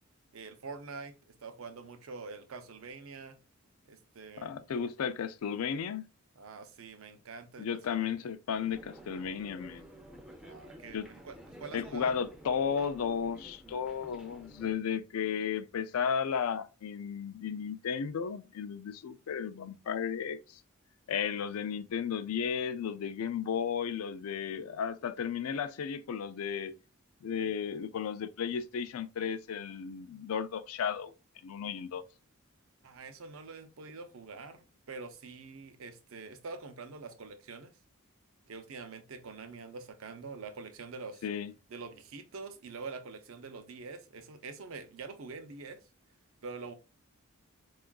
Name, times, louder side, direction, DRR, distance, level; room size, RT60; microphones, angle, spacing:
voice 1, 0.3-3.4 3.9-4.6 6.4-8.3 10.4-12.2 32.8-37.7 38.5-41.2 41.7-45.8 46.4-46.7, right 4 dB, 65° right, 0.5 m, -45 dB
voice 2, 4.4-6.0 7.6-9.9 10.9-11.1 11.7-20.6 21.1-26.7 27.2-31.1 31.4-32.0 41.2-41.5, left 7 dB, 80° left, 0.4 m, -34 dB
sound 1, 8.5-14.7, equal, 5° right, 0.5 m, -51 dB
4.5 x 2.3 x 2.3 m
head